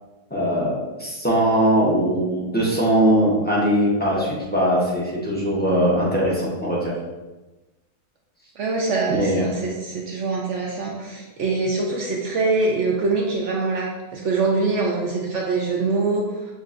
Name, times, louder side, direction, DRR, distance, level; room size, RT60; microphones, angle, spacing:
voice 1, 0.3-6.9 9.1-9.4, equal, 10° left, -6 dB, 0.6 m, -21 dB
voice 2, 8.6-16.3, right 3 dB, 65° right, -1 dB, 0.7 m, -24 dB
6.4 x 2.5 x 2.5 m, 1.1 s
omnidirectional pair, 1.7 m